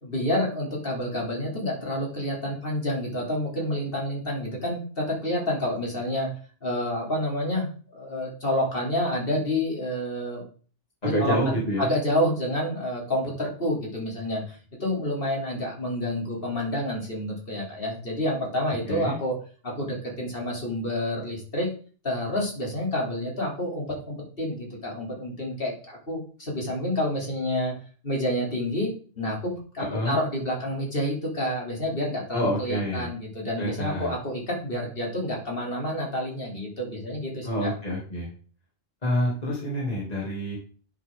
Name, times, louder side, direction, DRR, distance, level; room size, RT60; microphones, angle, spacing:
voice 1, 0.0-6.3 6.6-10.4 11.0-19.4 19.6-21.7 22.0-27.7 28.0-37.7, left 1 dB, 55° left, -2 dB, 3.6 m, -29 dB
voice 2, 11.0-11.9 18.9-19.2 29.8-30.2 32.3-33.1 33.6-34.1 37.4-38.3 39.0-40.6, equal, 35° left, -3 dB, 2.9 m, -27 dB
10.5 x 7.7 x 3.8 m, 0.41 s
omnidirectional pair, 1.2 m